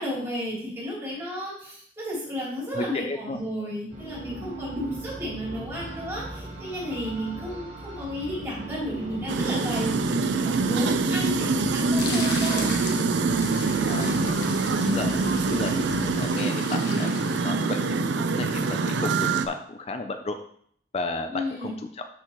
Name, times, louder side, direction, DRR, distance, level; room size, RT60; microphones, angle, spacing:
voice 1, 0.0-12.7 21.3-21.7, equal, 15° right, -7 dB, 3.0 m, -32 dB
voice 2, 2.7-3.4 4.4-4.5 11.9-12.3 13.9-14.4 14.9-20.4 20.9-22.0, left 2 dB, 35° left, 7 dB, 0.4 m, -34 dB
sound 1, 3.9-16.3, right 3 dB, 45° right, 2.9 m, -38 dB
sound 2, 9.3-19.5, right 4 dB, 75° right, 0.5 m, -25 dB
sound 3, 11.8-17.9, left 4 dB, 70° left, 1.2 m, -38 dB
12.0 x 4.5 x 3.0 m, 0.64 s
head